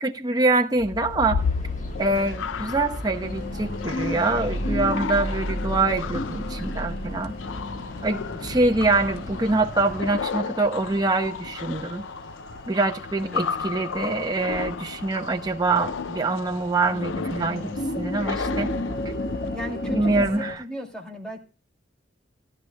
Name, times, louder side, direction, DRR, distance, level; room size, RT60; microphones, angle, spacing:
voice 1, 0.0-1.4 2.0-7.3 8.0-12.0 12.7-18.7 19.9-20.6, right 2 dB, 20° right, 0.9 m, -24 dB
sound 1, 0.8-19.5, left 6 dB, 85° left, 0.5 m, -34 dB
sound 2, 1.4-10.2, equal, 40° left, 1.7 m, -35 dB
sound 3, 3.2-20.6, left 2 dB, 55° left, 1.3 m, -35 dB
voice 2, 8.3-8.6 13.2-13.8 19.5-21.4, equal, 5° left, 2.4 m, -37 dB
17.5 x 11.5 x 2.2 m
head